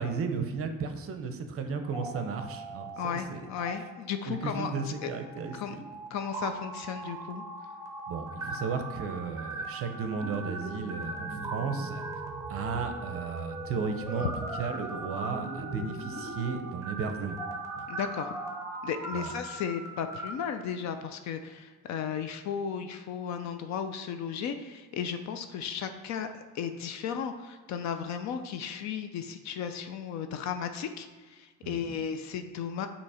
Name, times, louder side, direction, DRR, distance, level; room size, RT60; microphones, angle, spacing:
voice 1, 0.0-3.5 4.3-5.8 8.1-12.0 12.5-14.3 14.6-17.4 17.8-17.9 19.1-19.3 31.6-32.0, right 5 dB, 45° right, 7 dB, 0.6 m, -34 dB
sound 1, 1.8-3.2 3.4-3.7 4.3-20.3, right 2 dB, 10° right, 0.8 m, -39 dB
voice 2, 3.0-5.1 5.5-5.7 6.1-7.4 14.2-14.3 17.9-18.3 18.8-32.9, left 7 dB, 55° left, 8 dB, 0.5 m, -35 dB
6.9 x 2.9 x 4.8 m, 1.4 s
cardioid pair, 150°, 33 cm